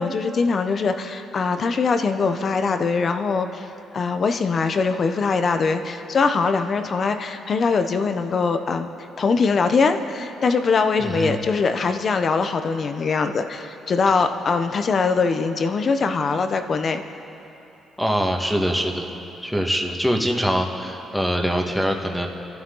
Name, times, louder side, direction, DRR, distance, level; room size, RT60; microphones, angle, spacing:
voice 1, 0.0-3.7 3.9-17.0, left 4 dB, 50° left, 8 dB, 1.0 m, -22 dB
voice 2, 11.0-11.4 18.0-19.1 19.4-22.3, equal, ahead, 2 dB, 1.6 m, -23 dB
27.0 x 11.5 x 3.9 m, 2.9 s
cardioid pair, 90°, 0 cm